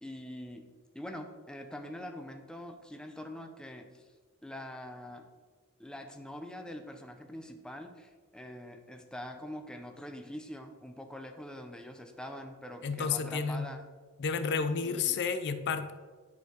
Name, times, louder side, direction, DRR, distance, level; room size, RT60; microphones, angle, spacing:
voice 1, 0.0-4.1 4.4-5.3 5.8-13.8 14.8-15.2, left 1 dB, 5° left, 5 dB, 0.6 m, -44 dB
voice 2, 12.8-13.7 14.2-15.9, left 5 dB, 50° left, 10 dB, 0.5 m, -31 dB
10.5 x 4.5 x 4.8 m, 1.4 s
head